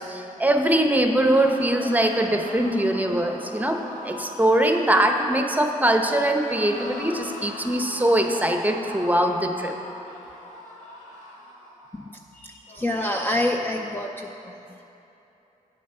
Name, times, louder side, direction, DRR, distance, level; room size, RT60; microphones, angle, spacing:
voice 1, 0.0-9.8, right 1 dB, 10° right, 4 dB, 0.8 m, -22 dB
sound 1, 1.3-5.9 6.3-12.1 12.7-14.1, left 1 dB, 55° left, 2.1 m, -41 dB
voice 2, 12.4-14.1, left 1 dB, 15° left, 2 dB, 0.5 m, -26 dB
8.6 x 7.4 x 5.6 m, 3.0 s
cardioid pair, 70°, 15 cm